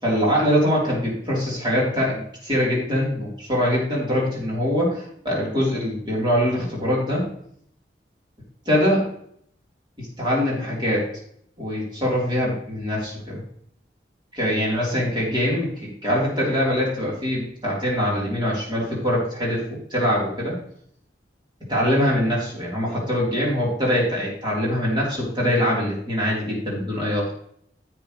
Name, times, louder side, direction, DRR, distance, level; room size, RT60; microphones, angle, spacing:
voice 1, 0.0-7.3 8.7-9.1 10.0-11.1 11.6-13.4 14.3-20.6 21.7-27.3, equal, 25° right, -5 dB, 4.1 m, -23 dB
11.0 x 7.7 x 3.4 m, 0.67 s
head